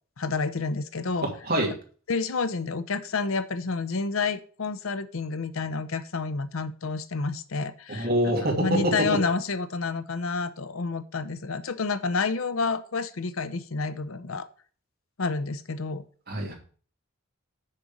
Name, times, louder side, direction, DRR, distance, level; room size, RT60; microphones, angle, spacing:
voice 1, 0.2-1.3 2.1-8.1 8.6-14.5 15.2-16.0, left 4 dB, 90° left, 13 dB, 0.7 m, -29 dB
voice 2, 1.2-1.8 7.9-9.2 16.3-16.5, right 1 dB, 50° right, 0 dB, 2.5 m, -25 dB
6.6 x 5.2 x 7.1 m, 0.42 s
head